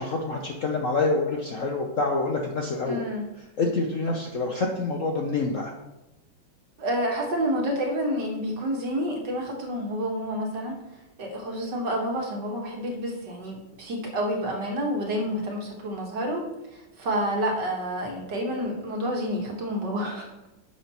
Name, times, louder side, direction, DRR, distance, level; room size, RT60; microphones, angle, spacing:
voice 1, 0.0-3.0 3.6-5.7, left 3 dB, 55° left, 1 dB, 0.9 m, -27 dB
voice 2, 2.8-3.3 6.8-10.7 11.2-16.4 16.7-20.3, equal, 60° right, 1 dB, 2.0 m, -29 dB
11.0 x 6.2 x 3.0 m, 0.96 s
omnidirectional pair, 2.2 m